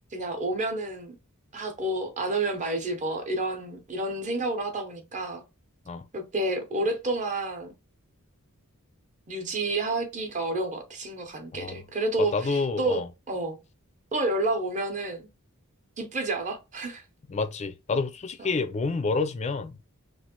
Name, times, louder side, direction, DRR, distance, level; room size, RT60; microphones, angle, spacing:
voice 1, 0.1-1.2 1.5-5.4 6.1-7.7 9.3-13.0 13.3-13.6 14.1-15.3 16.0-17.0 18.4-18.6, right 2 dB, 35° right, 0.7 m, -30 dB
voice 2, 12.3-13.1 17.3-19.9, left 4 dB, 30° left, 0.4 m, -29 dB
3.0 x 2.5 x 2.9 m
head